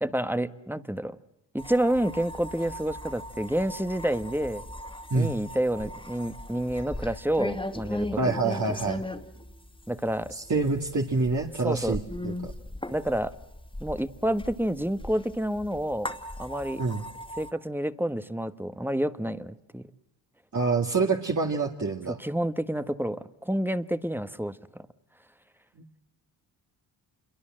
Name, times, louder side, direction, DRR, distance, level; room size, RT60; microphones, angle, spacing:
voice 1, 0.0-1.2 1.5-4.6 5.1-8.3 9.9-10.3 11.6-12.0 12.9-13.3 13.8-16.1 16.4-16.8 17.4-19.9 22.1-24.9, right 1 dB, 5° right, 12 dB, 1.3 m, -29 dB
sound 1, 1.6-17.5, left 1 dB, 10° left, 2.3 m, -39 dB
voice 2, 8.2-9.0 10.3-12.5 16.8-17.1 20.5-22.2 25.8-25.9, right 3 dB, 45° right, 0 dB, 2.2 m, -26 dB
27.0 x 23.0 x 7.7 m, 0.86 s
cardioid pair, 60°, 42 cm